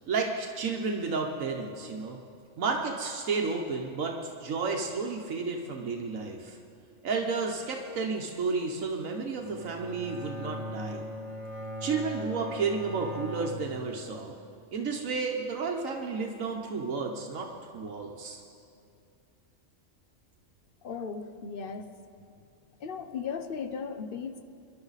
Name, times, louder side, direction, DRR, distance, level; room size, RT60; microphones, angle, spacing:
voice 1, 0.1-2.2 2.6-6.6 7.0-11.0 11.8-14.3 14.7-17.5 17.7-18.4, right 4 dB, 85° right, 1 dB, 1.4 m, -32 dB
Bowed string instrument, 9.4-14.6, equal, 25° right, 1.6 m, -40 dB
voice 2, 20.8-21.9 22.8-24.4, left 6 dB, 50° left, 8 dB, 0.9 m, -36 dB
27.5 x 11.5 x 4.1 m, 2.6 s
omnidirectional pair, 1.3 m